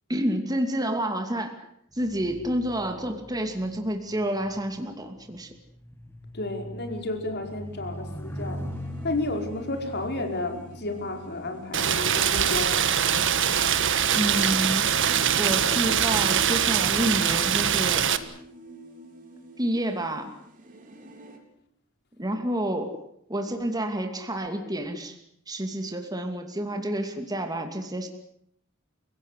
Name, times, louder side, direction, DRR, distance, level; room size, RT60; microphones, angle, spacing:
voice 1, 0.1-1.7 1.9-5.5 14.1-14.9 15.4-18.1 19.6-20.3 22.2-22.9 23.3-25.2 25.5-28.1, right 1 dB, 20° right, 5 dB, 2.6 m, -29 dB
sound 1, 1.9-13.5 14.3-14.6, equal, 10° left, 1.7 m, -42 dB
voice 2, 6.3-8.6 9.0-12.9, left 2 dB, 50° left, 4 dB, 5.0 m, -32 dB
sound 2, 8.1-21.4, right 1 dB, 40° right, 4.2 m, -47 dB
Rain, 11.7-18.2, right 8 dB, 60° right, 1.6 m, -23 dB
29.5 x 17.5 x 8.3 m, 0.72 s
head